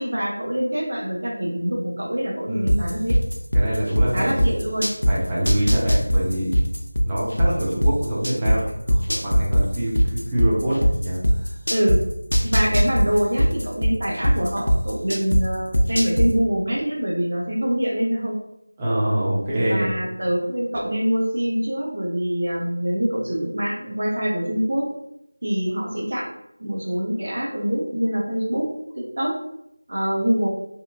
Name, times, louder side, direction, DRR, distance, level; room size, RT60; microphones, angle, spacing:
voice 1, 0.0-3.2 4.1-4.9 11.7-12.0 12.4-18.4 19.6-24.9 25.4-26.3 26.6-28.7 29.0-29.3 29.9-30.5, equal, 45° right, -2 dB, 0.7 m, -24 dB
voice 2, 2.5-2.8 3.5-4.4 5.1-6.5 7.0-11.2 18.8-20.0, right 1 dB, 10° right, -7 dB, 0.4 m, -25 dB
sound 1, 2.7-5.1 5.5-8.5 8.9-12.0 12.3-15.4 15.7-16.3, equal, 80° left, 0.5 m, -18 dB
2.9 x 2.3 x 2.3 m, 0.80 s
figure-of-eight pair, 175°, 0 cm